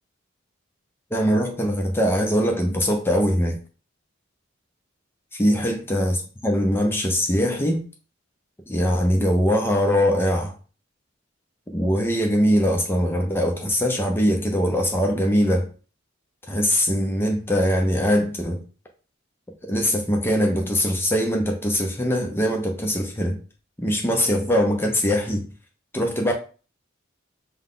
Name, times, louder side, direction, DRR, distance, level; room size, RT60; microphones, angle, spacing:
voice 1, 1.1-3.6 5.3-6.2 6.4-7.8 8.7-10.5 11.7-15.7 16.5-18.6 19.6-23.4 23.8-25.5 25.9-26.3, equal, 10° left, 0.5 m, -22 dB
5.5 x 2.2 x 3.7 m
head